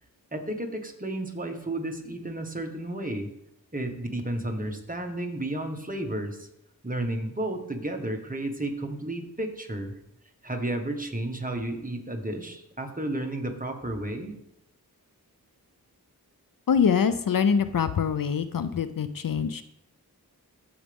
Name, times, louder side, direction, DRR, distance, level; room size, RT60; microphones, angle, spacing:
voice 1, 0.3-3.3 3.7-6.5 6.8-9.9 10.4-14.3, right 1 dB, 20° right, 4 dB, 1.5 m, -32 dB
voice 2, 16.7-19.6, left 7 dB, 60° left, 12 dB, 0.5 m, -24 dB
14.5 x 5.0 x 3.6 m, 0.79 s
cardioid pair, 45°, 38 cm